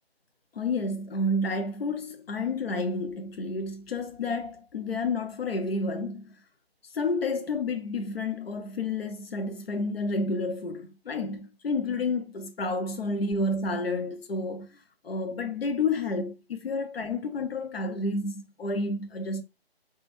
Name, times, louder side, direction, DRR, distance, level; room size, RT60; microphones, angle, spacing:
voice 1, 0.5-6.3 6.9-19.4, left 2 dB, 70° left, 0.5 m, -30 dB
4.1 x 2.2 x 2.9 m
figure-of-eight pair, 155°, 31 cm